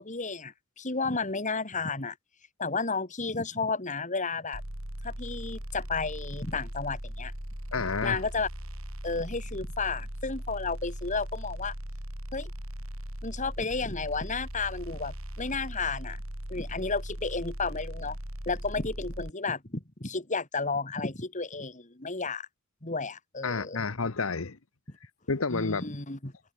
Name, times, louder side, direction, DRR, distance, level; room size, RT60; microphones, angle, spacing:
voice 1, 0.0-2.1 2.6-4.6 5.0-7.3 8.0-8.5 9.0-11.7 12.3-12.5 13.2-16.2 16.5-18.2 18.5-22.5 22.8-23.8 25.5-26.3, left 4 dB, 35° left, 3.0 m, -32 dB
sound 1, 4.5-19.3, equal, 85° right, 6.2 m, -39 dB
voice 2, 7.7-8.2 23.4-24.6 25.3-25.8, left 4 dB, 80° left, 1.2 m, -30 dB
head